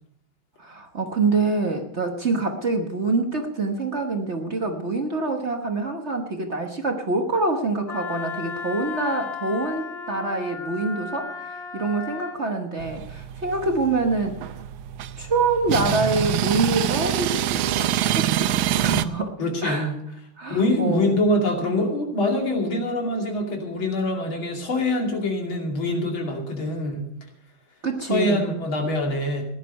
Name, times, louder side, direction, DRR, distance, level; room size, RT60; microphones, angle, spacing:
voice 1, 0.6-14.5 15.2-19.9 20.4-21.2 27.8-28.5, right 3 dB, 40° right, 4 dB, 1.3 m, -26 dB
Wind instrument woodwind instrument, 7.9-12.4, left 6 dB, 30° left, 1.8 m, -35 dB
sound 1, 12.8-19.0, right 12 dB, 85° right, 1.5 m, -26 dB
voice 2, 19.4-20.0 20.5-27.1 28.1-29.4, left 1 dB, 80° left, 1 dB, 3.4 m, -24 dB
16.5 x 11.0 x 5.4 m, 0.73 s
omnidirectional pair, 2.2 m